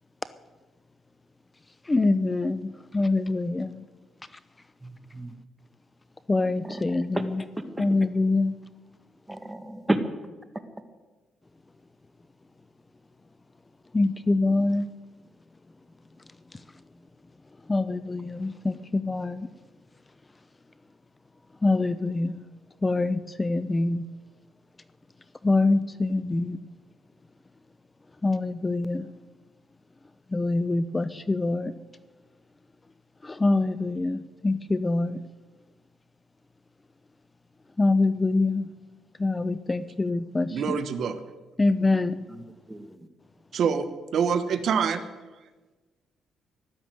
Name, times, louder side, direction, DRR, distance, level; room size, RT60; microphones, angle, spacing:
voice 1, 1.9-3.8 6.3-7.4 7.8-8.6 13.9-14.9 17.7-19.5 21.6-22.4 22.8-24.0 25.4-26.6 28.2-29.1 30.3-31.7 33.2-35.2 37.8-38.7 39.2-40.8 41.6-42.3, left 2 dB, 20° left, 0.7 m, -25 dB
voice 2, 4.8-5.3 6.6-6.8 7.1-7.2 9.3-10.0 42.3-42.4 42.7-43.1, right 1 dB, 10° right, 1.8 m, -31 dB
voice 3, 40.5-41.2 43.5-43.9 44.1-45.0, right 6 dB, 65° right, 1.2 m, -25 dB
15.5 x 12.0 x 7.8 m
cardioid pair, 90°, 0 cm